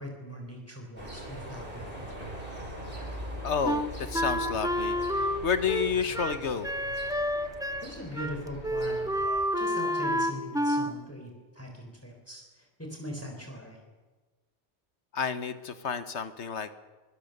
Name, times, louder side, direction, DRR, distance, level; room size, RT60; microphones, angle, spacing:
voice 1, 0.0-2.2 7.8-9.0 9.6-13.8, equal, 10° left, 2 dB, 3.9 m, -41 dB
sound 1, 1.0-9.5, equal, 50° right, 5.1 m, -41 dB
voice 2, 3.4-6.7 15.1-16.7, left 6 dB, 75° left, 10 dB, 1.5 m, -30 dB
Wind instrument woodwind instrument, 3.6-7.9 8.2-8.4 8.6-10.9, equal, 5° right, 0.9 m, -29 dB
24.0 x 18.5 x 6.7 m, 1.3 s
omnidirectional pair, 1.2 m